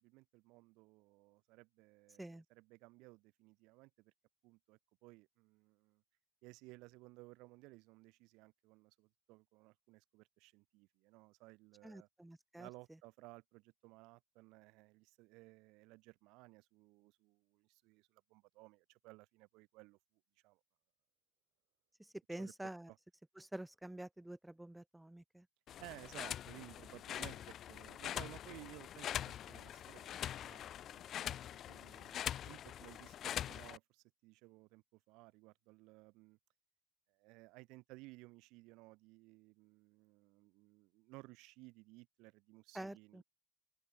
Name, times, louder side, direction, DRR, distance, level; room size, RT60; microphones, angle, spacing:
voice 1, 0.0-4.1 4.4-6.0 6.4-12.1 12.6-20.0 20.4-20.6 22.4-22.5 25.8-32.2 32.5-36.4 37.1-43.2, right 23 dB, 75° right, 3.1 m, -58 dB
voice 2, 11.8-12.7 22.0-22.9 23.4-25.5 42.7-43.2, right 1 dB, 5° right, 1.2 m, -48 dB
sound 1, 25.7-33.8, left 11 dB, 45° left, 0.6 m, -44 dB
open air
cardioid pair, 130°, 0 cm